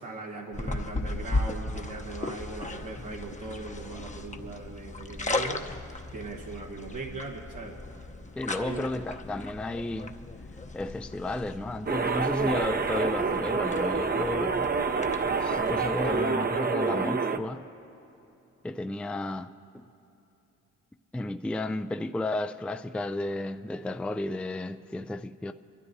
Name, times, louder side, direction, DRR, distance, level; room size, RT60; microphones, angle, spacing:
voice 1, 0.0-5.6 5.9-7.8 8.5-8.9, right 3 dB, 80° right, 1.4 m, -39 dB
sound 1, 0.5-16.2, left 2 dB, 25° left, 0.8 m, -37 dB
voice 2, 8.4-10.1 10.7-14.7 15.4-17.6 18.6-19.9 21.1-25.5, left 2 dB, 5° left, 0.3 m, -33 dB
sound 2, 11.9-17.4, right 4 dB, 30° right, 0.7 m, -27 dB
23.0 x 12.5 x 2.7 m
supercardioid pair, 50°, 31 cm